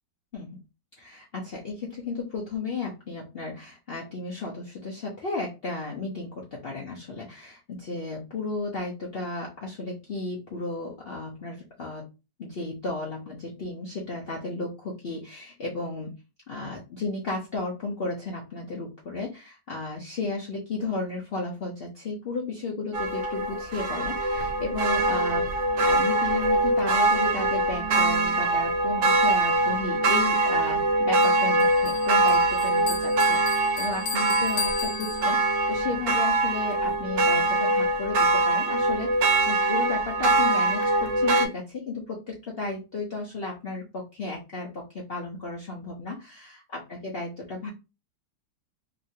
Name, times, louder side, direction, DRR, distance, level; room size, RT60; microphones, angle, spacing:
voice 1, 1.0-12.1 12.4-16.1 16.5-47.7, left 3 dB, 80° left, -2 dB, 0.5 m, -34 dB
sound 1, 22.9-41.5, right 2 dB, 80° right, 0.7 m, -23 dB
Bell, 31.2-35.7, left 6 dB, 60° left, 0.9 m, -36 dB
2.9 x 2.6 x 2.7 m, 0.28 s
omnidirectional pair, 1.9 m